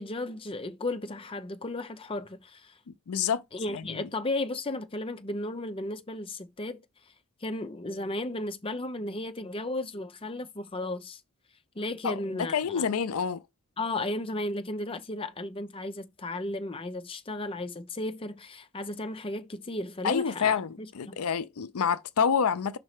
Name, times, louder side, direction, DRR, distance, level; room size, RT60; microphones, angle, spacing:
voice 1, 0.0-2.8 3.5-6.8 7.4-11.2 11.8-12.9 13.8-21.2, left 2 dB, 25° left, 0.7 m, -34 dB
voice 2, 3.1-3.4 3.7-4.1 12.0-13.4 20.0-22.8, left 7 dB, 85° left, 0.5 m, -28 dB
5.5 x 4.0 x 4.9 m
head